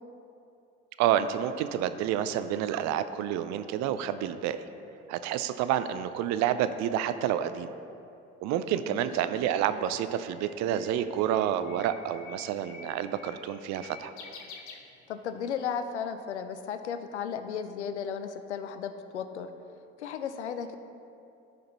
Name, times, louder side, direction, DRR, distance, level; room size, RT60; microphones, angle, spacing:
voice 1, 1.0-4.6 5.1-7.7 8.4-14.1, right 10 dB, 55° right, 11 dB, 0.5 m, -29 dB
Bird, 9.2-15.4, left 4 dB, 65° left, 1.0 m, -49 dB
voice 2, 15.1-19.5 20.0-20.7, left 7 dB, 90° left, 9 dB, 0.5 m, -35 dB
14.5 x 5.1 x 3.0 m, 2.7 s
hypercardioid pair, 60°, 33 cm